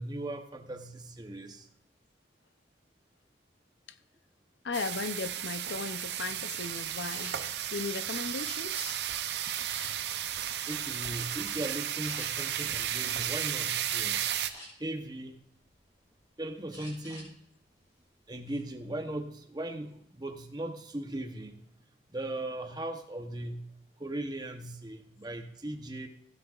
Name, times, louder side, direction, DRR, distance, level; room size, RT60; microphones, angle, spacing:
voice 1, 0.0-1.7 10.4-14.2 14.8-15.4 16.4-17.4 18.3-21.7 22.1-23.6 24.0-26.1, right 1 dB, 20° right, 0.8 m, -38 dB
voice 2, 4.6-7.4 7.7-9.0, left 4 dB, 70° left, 0.6 m, -36 dB
sound 1, 4.7-14.5, right 10 dB, 60° right, 0.6 m, -34 dB
sound 2, 7.1-7.3 8.0-8.9 9.7-10.3 10.8-11.0 11.4-11.5 12.0-12.3 14.2-14.9 15.4-16.2 16.7-17.3 17.6-17.8 18.2-18.6, left 1 dB, 15° left, 4.8 m, -48 dB
15.5 x 9.9 x 2.5 m
head